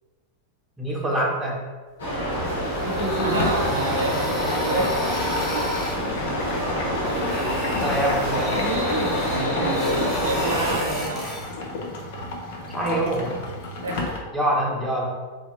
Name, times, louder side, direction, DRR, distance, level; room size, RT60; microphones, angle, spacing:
voice 1, 0.8-1.6 7.8-8.5 12.7-13.4 14.3-15.0, right 1 dB, 5° right, -4 dB, 0.9 m, -24 dB
sound 1, 2.0-10.8, equal, 65° left, 1.3 m, -26 dB
sound 2, 2.5-6.0 6.9-11.5, left 1 dB, 20° left, 1.2 m, -33 dB
sound 3, 2.8-14.2, left 2 dB, 50° left, 0.6 m, -32 dB
voice 2, 3.2-5.6 9.3-11.2 13.8-14.2, right 2 dB, 65° right, 0 dB, 0.5 m, -29 dB
4.1 x 3.2 x 2.6 m, 1.4 s
figure-of-eight pair, 90°, 0 cm